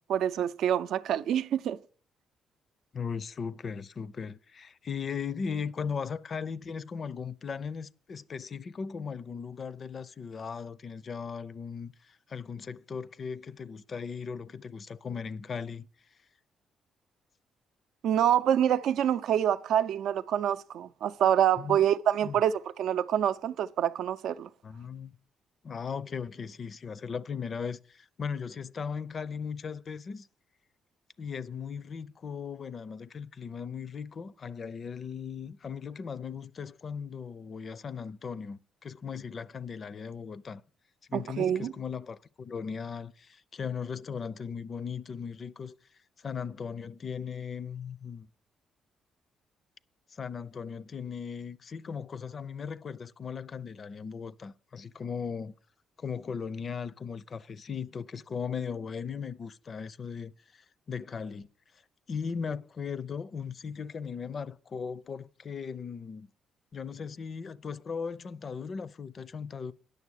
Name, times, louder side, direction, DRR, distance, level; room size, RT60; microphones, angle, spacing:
voice 1, 0.0-1.8 18.0-24.5 41.1-41.7, right 10 dB, 75° right, 0.5 m, -26 dB
voice 2, 2.9-15.9 21.6-21.8 22.2-22.4 24.6-25.1 25.6-30.3 31.2-40.6 41.1-45.8 46.2-48.3 50.1-55.5 56.0-61.5 62.1-66.3 66.7-69.7, left 6 dB, 45° left, 0.5 m, -38 dB
9.8 x 6.7 x 6.3 m
cardioid pair, 90°, 0 cm